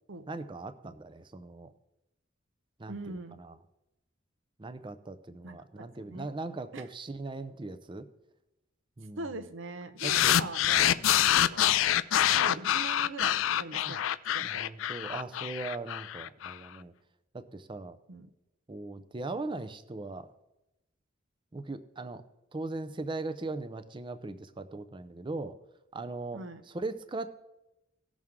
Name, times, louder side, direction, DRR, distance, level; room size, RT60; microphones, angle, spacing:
voice 1, 0.3-1.7 2.8-3.6 4.6-8.1 9.0-9.3 10.0-10.4 10.9-11.4 13.8-14.0 14.4-16.9 17.3-18.0 18.7-20.3 21.5-22.2 22.5-25.5 25.9-27.4, right 2 dB, 25° right, 11 dB, 0.5 m, -39 dB
voice 2, 2.9-3.4 5.4-5.6 6.1-6.3 6.7-6.8 9.2-11.1 11.4-11.8 12.3-14.0 14.3-14.6 18.1-18.3 26.3-26.6, right 3 dB, 65° right, 10 dB, 0.7 m, -41 dB
sound 1, 10.0-16.5, left 11 dB, 75° left, 0.3 m, -26 dB
17.5 x 6.2 x 3.6 m, 0.94 s
head